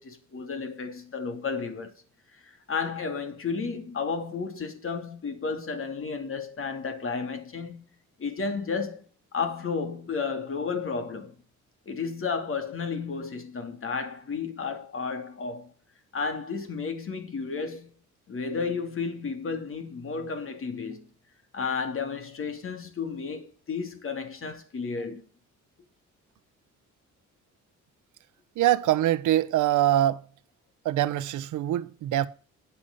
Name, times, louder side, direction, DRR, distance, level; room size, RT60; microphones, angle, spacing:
voice 1, 0.0-1.9 2.4-7.8 8.2-9.0 9.3-11.3 11.9-15.7 16.1-17.9 18.3-21.1 21.5-25.2, left 5 dB, 45° left, 2.8 m, -32 dB
voice 2, 28.6-30.2 30.8-32.3, right 13 dB, 80° right, 1.0 m, -24 dB
9.7 x 8.5 x 5.5 m
cardioid pair, 90°, 30 cm